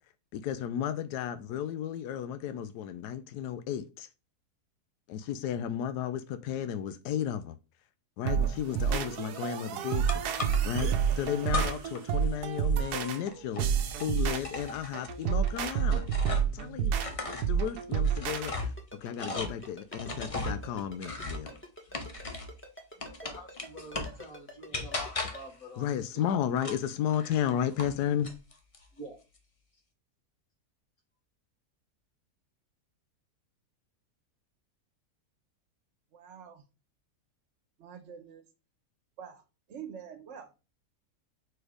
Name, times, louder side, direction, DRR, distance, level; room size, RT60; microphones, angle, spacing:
voice 1, 0.3-4.1 5.1-7.6 8.2-10.2 10.6-13.7 14.0-16.1 16.5-16.9 17.3-18.7 19.0-21.6 25.8-28.3, left 9 dB, 90° left, 1.2 m, -33 dB
sound 1, 8.3-18.5, right 8 dB, 75° right, 1.3 m, -29 dB
sound 2, 10.1-10.8 11.5-12.0 12.3-16.6 16.9-22.6 23.0-24.2 24.7-25.5 26.6-28.0 28.2-28.8, left 2 dB, 30° left, 0.7 m, -38 dB
Ringtone, 18.6-25.4, equal, 10° left, 1.1 m, -47 dB
voice 2, 23.2-26.3 28.9-29.2, right 1 dB, 65° left, 2.2 m, -46 dB
voice 3, 36.1-36.6 37.8-38.5 39.2-39.4 39.7-40.6, right 8 dB, 55° right, 1.2 m, -46 dB
4.6 x 4.3 x 4.8 m
omnidirectional pair, 1.7 m